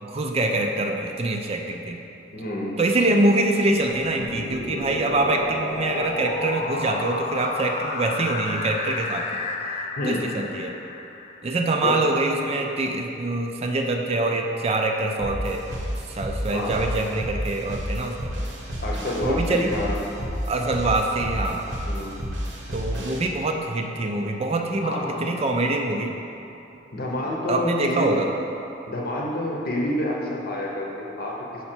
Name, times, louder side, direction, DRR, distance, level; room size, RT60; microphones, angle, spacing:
voice 1, 0.0-2.1 2.8-9.3 10.1-10.7 11.4-15.6 16.1-18.2 19.2-19.7 20.5-21.7 22.7-26.2 27.5-28.3, right 2 dB, 30° right, 2 dB, 0.4 m, -24 dB
voice 2, 2.3-2.8 10.0-10.3 11.8-12.0 16.5-16.8 18.8-20.0 21.8-22.4 24.8-25.4 26.9-28.2 28.9-31.6, left 1 dB, 50° left, -1 dB, 0.8 m, -28 dB
sound 1, 3.7-11.6, left 3 dB, 35° left, 0.4 m, -32 dB
sound 2, 15.2-23.2, equal, 85° right, 1.0 m, -31 dB
5.5 x 4.9 x 4.4 m, 2.9 s
head